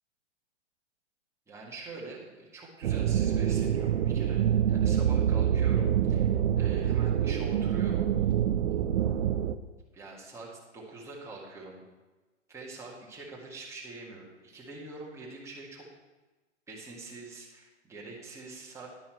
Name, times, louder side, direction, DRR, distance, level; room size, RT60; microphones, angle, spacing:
voice 1, 1.5-8.1 8.7-8.8 9.6-11.8 12.5-15.9 16.7-18.9, right 3 dB, 10° right, -4 dB, 1.8 m, -45 dB
sound 1, 2.8-9.6, right 9 dB, 75° right, 0.6 m, -26 dB
11.0 x 5.5 x 4.5 m, 1.2 s
hypercardioid pair, 140°, 36 cm